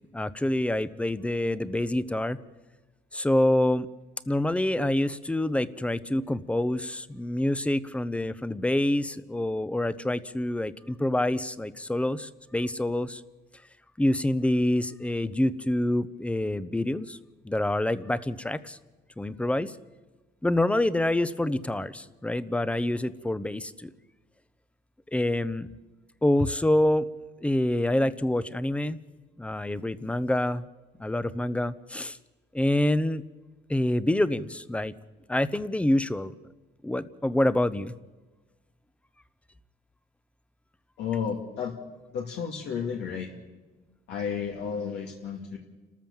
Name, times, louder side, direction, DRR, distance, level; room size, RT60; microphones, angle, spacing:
voice 1, 0.1-2.4 3.1-3.9 4.3-13.2 14.0-17.2 17.4-18.8 19.2-19.7 20.4-23.9 25.1-25.7 26.2-27.1 27.4-29.0 29.4-30.6 31.0-32.2 32.5-33.2 33.7-34.9 35.3-36.3 36.8-37.9, left 1 dB, 5° left, 16 dB, 0.8 m, -26 dB
voice 2, 41.0-41.7 42.1-43.3 44.1-45.6, left 7 dB, 80° left, 0 dB, 2.3 m, -32 dB
29.5 x 13.5 x 7.3 m, 1.2 s
cardioid pair, 110°, 17 cm